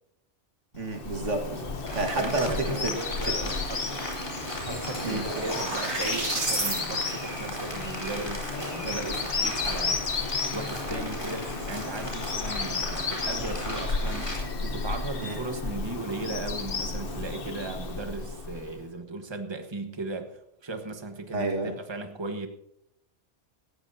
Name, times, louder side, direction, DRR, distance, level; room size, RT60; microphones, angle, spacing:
voice 1, 0.7-2.9 3.3-3.4 5.0-5.2 15.2-15.4 21.3-21.7, right 2 dB, 90° right, 4 dB, 2.0 m, -30 dB
Bird vocalization bird call bird song, 0.8-18.8, left 4 dB, 50° left, 1.3 m, -33 dB
Rain, 1.9-14.4, equal, 25° left, 4.1 m, -37 dB
voice 2, 2.1-3.9 4.7-10.2 10.5-22.5, right 2 dB, 25° right, 6 dB, 1.3 m, -37 dB
sound 1, 4.0-4.1 4.3-6.8, right 3 dB, 70° right, 2.3 m, -32 dB
18.0 x 14.5 x 2.8 m, 0.78 s
omnidirectional pair, 1.2 m